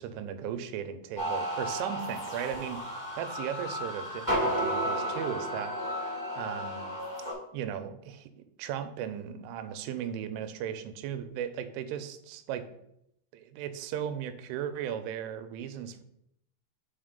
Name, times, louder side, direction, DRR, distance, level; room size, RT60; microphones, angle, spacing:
voice 1, 0.0-2.9 3.2-5.7 6.4-7.0 7.5-8.3 8.6-12.7 13.3-16.0, right 9 dB, 90° right, 10 dB, 3.1 m, -36 dB
sound 1, 1.2-7.3, equal, 10° right, 1.1 m, -33 dB
5.9 x 4.8 x 5.1 m, 0.78 s
omnidirectional pair, 5.5 m